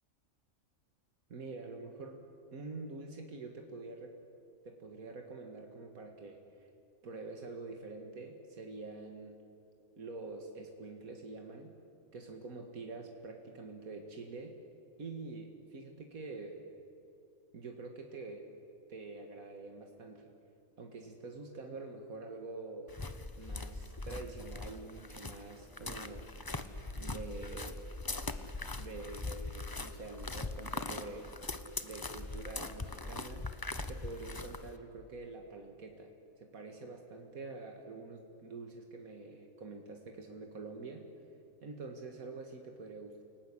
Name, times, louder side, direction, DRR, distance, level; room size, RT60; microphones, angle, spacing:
voice 1, 1.3-2.2 2.5-4.1 4.6-6.7 7.0-9.4 10.0-11.8 12.1-14.6 15.0-16.6 17.5-18.5 18.9-20.3 20.8-22.9 23.4-26.3 26.9-27.9 28.6-31.3 31.8-33.6 33.9-36.1 36.4-41.1 41.6-43.2, right 3 dB, 85° right, 3 dB, 2.3 m, -46 dB
sound 1, 22.9-34.8, left 2 dB, 20° left, 0.9 m, -41 dB
28.5 x 18.5 x 9.9 m, 2.6 s
omnidirectional pair, 1.4 m